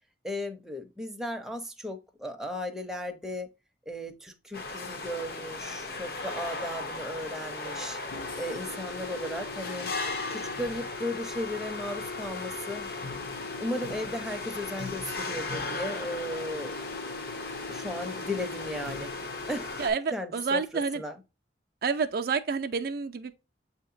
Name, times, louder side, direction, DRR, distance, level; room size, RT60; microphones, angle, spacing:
voice 1, 0.2-3.5 3.9-8.0 8.4-9.9 10.3-12.9 13.6-16.8 17.6-19.1 19.5-19.7 20.1-21.2, left 1 dB, ahead, 0.5 m, -36 dB
sound 1, 4.5-19.9, left 3 dB, 55° left, 0.8 m, -36 dB
voice 2, 19.8-21.0 21.8-23.3, right 5 dB, 55° right, 0.3 m, -29 dB
7.2 x 2.8 x 2.5 m
head